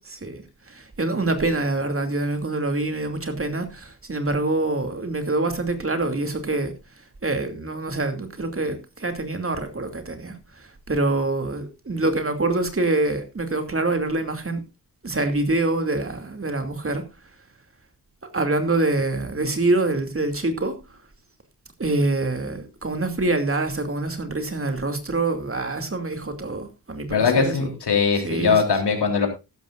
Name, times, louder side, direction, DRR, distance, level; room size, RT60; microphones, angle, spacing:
voice 1, 0.7-6.7 7.2-10.3 10.9-14.6 15.0-17.0 18.3-20.8 21.8-27.7 28.2-28.6, right 2 dB, 35° right, 2.7 m, -25 dB
voice 2, 27.1-29.3, left 5 dB, 85° left, 3.7 m, -21 dB
15.0 x 12.5 x 2.5 m
wide cardioid pair, 85°, 39 cm